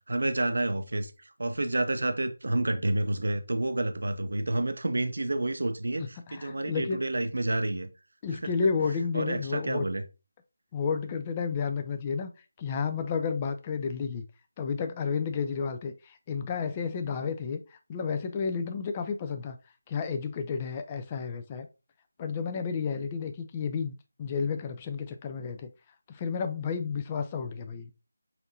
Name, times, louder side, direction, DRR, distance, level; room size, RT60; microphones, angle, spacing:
voice 1, 0.1-7.9 8.4-8.5 9.1-10.0, right 2 dB, 70° right, 0.5 m, -29 dB
voice 2, 6.3-7.0 8.2-9.9 10.7-12.3 12.6-14.3 14.6-19.6 19.9-21.7 22.2-23.9 24.2-25.7 26.1-27.9, left 5 dB, 20° left, 0.3 m, -31 dB
5.7 x 2.6 x 2.7 m
figure-of-eight pair, 165°, 0 cm